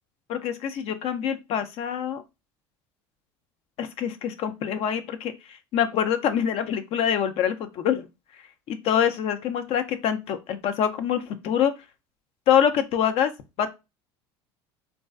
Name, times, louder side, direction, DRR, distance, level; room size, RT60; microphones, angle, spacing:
voice 1, 0.3-2.2 3.8-8.1 8.4-11.8 12.5-13.3 13.6-13.7, left 9 dB, 55° left, 10 dB, 0.5 m, -25 dB
2.4 x 2.3 x 2.3 m, 0.25 s
supercardioid pair, 90°, 12 cm